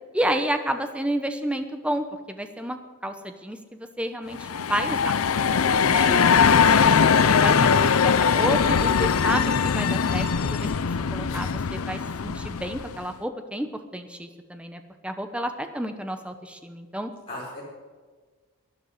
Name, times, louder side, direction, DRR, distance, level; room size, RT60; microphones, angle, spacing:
voice 1, 0.1-5.1 5.8-6.1 6.7-13.7 13.9-17.1, right 1 dB, 5° right, 7 dB, 0.9 m, -31 dB
sound 1, 4.3-13.0, left 6 dB, 75° left, 0.6 m, -21 dB
voice 2, 5.9-6.4 17.3-17.6, left 1 dB, 25° left, -9 dB, 5.3 m, -34 dB
12.0 x 11.0 x 10.0 m, 1.4 s
head